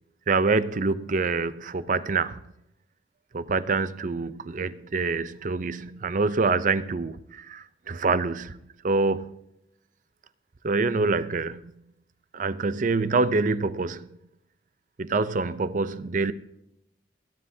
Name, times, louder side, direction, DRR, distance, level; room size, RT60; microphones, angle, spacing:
voice 1, 0.3-2.4 3.3-8.6 8.8-9.4 10.6-11.6 12.3-14.1 15.0-16.3, right 3 dB, 45° right, 0.6 m, -26 dB
28.5 x 9.9 x 2.8 m
head